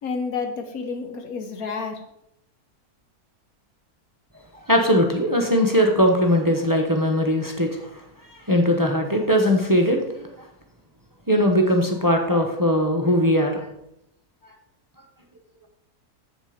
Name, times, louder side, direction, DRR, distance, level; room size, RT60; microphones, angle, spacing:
voice 1, 0.0-2.0, left 4 dB, 70° left, 6 dB, 1.4 m, -30 dB
voice 2, 4.7-7.9 8.3-10.3 11.3-13.7, equal, 15° right, 3 dB, 0.8 m, -20 dB
7.4 x 7.4 x 5.0 m, 0.80 s
omnidirectional pair, 1.6 m